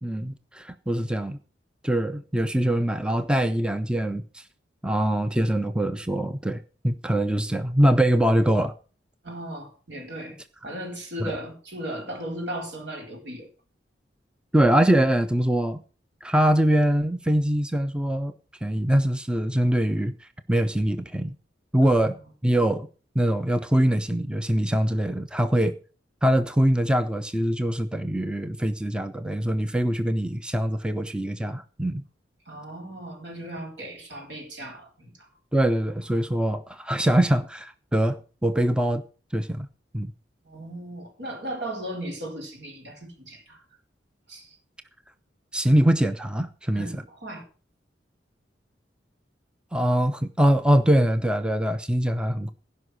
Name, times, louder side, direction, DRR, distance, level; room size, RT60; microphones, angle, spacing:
voice 1, 0.0-1.4 1.8-4.4 4.8-8.7 11.2-11.3 14.5-15.8 16.2-18.3 18.6-21.3 21.7-22.1 22.4-22.9 23.2-25.8 26.2-32.0 35.5-39.0 39.3-39.7 39.9-40.1 45.5-47.0 49.7-52.5, right 1 dB, 5° right, 0.5 m, -23 dB
voice 2, 9.2-10.4 10.6-13.5 21.8-22.2 32.5-35.3 40.4-43.6 44.3-44.6 46.7-47.4, right 1 dB, 70° right, 4.2 m, -36 dB
16.0 x 5.5 x 6.3 m
head